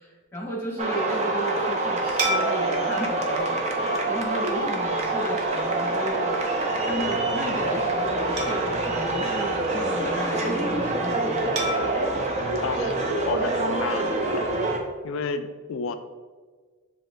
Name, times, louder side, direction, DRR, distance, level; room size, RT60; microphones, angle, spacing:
voice 1, 0.0-3.6 4.1-6.4 6.8-11.6, equal, 10° left, -4 dB, 1.0 m, -34 dB
sound 1, 0.8-14.8, right 2 dB, 30° right, 0.5 m, -26 dB
sound 2, 2.2-4.9 5.4-5.6 8.4-10.2 11.6-13.8, right 3 dB, 75° right, 0.8 m, -34 dB
voice 2, 12.6-14.5 15.0-15.9, left 4 dB, 60° left, 9 dB, 0.3 m, -31 dB
7.0 x 2.9 x 2.5 m, 1.5 s
head